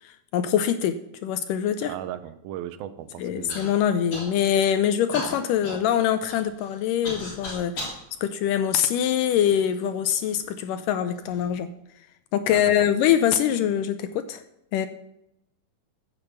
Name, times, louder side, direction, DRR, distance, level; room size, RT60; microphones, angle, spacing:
voice 1, 0.0-1.9 3.2-7.9 8.2-11.7 12.3-14.4 14.7-14.9, left 9 dB, 80° left, 10 dB, 2.0 m, -24 dB
voice 2, 1.8-3.6 12.5-12.6, right 12 dB, 85° right, 12 dB, 2.6 m, -36 dB
Human voice / Cough, 3.5-3.7 4.1-4.6 5.1-8.0 8.7-9.5 10.3-10.4 11.1-11.4, left 2 dB, 35° left, 4.0 m, -37 dB
15.5 x 7.2 x 6.7 m, 0.83 s
omnidirectional pair, 4.3 m